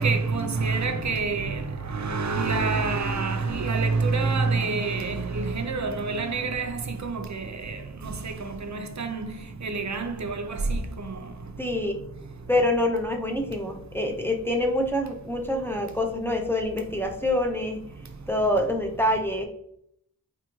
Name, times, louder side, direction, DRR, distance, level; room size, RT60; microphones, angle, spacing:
voice 1, 0.0-7.8 8.0-9.3 9.6-11.1, right 4 dB, 50° right, 0.5 m, -27 dB
voice 2, 11.6-12.0 12.5-17.8 18.3-19.5, left 1 dB, 5° left, 0.5 m, -26 dB
4.1 x 2.5 x 2.9 m
wide cardioid pair, 45°, 36 cm